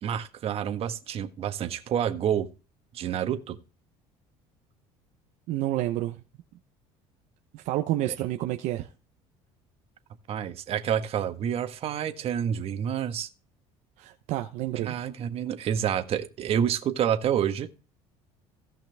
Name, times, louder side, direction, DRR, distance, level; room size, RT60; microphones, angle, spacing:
voice 1, 0.0-2.5 2.9-3.6 8.1-8.2 10.3-13.3 14.8-17.7, right 9 dB, 50° right, 1.5 m, -28 dB
voice 2, 5.5-6.2 7.5-8.9 14.0-15.0, right 15 dB, 75° right, 0.9 m, -29 dB
17.0 x 5.8 x 3.5 m
cardioid pair, 110°, 13 cm